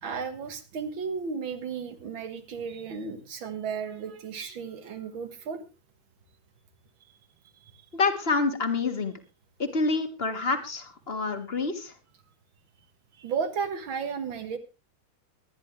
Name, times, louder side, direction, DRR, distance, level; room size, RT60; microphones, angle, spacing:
voice 1, 0.0-5.6 7.6-7.7 13.1-14.6, right 6 dB, 85° right, 9 dB, 2.3 m, -34 dB
voice 2, 7.9-9.2 9.6-11.9, left 4 dB, 30° left, 7 dB, 1.8 m, -27 dB
22.5 x 10.5 x 3.2 m, 0.28 s
omnidirectional pair, 2.1 m